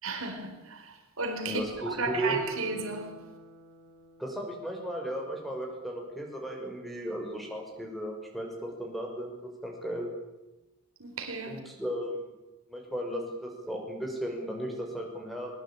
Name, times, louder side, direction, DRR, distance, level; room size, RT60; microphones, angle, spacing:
voice 1, 0.0-3.1 11.0-11.6, right 3 dB, 65° right, 4.2 m, -34 dB
voice 2, 1.5-2.4 4.2-10.1 11.5-12.2 12.7-15.5, right 1 dB, ahead, 6.0 m, -35 dB
Guitar, 2.1-5.4 5.8-5.9, right 2 dB, 50° right, 5.6 m, -49 dB
22.5 x 22.0 x 8.8 m
head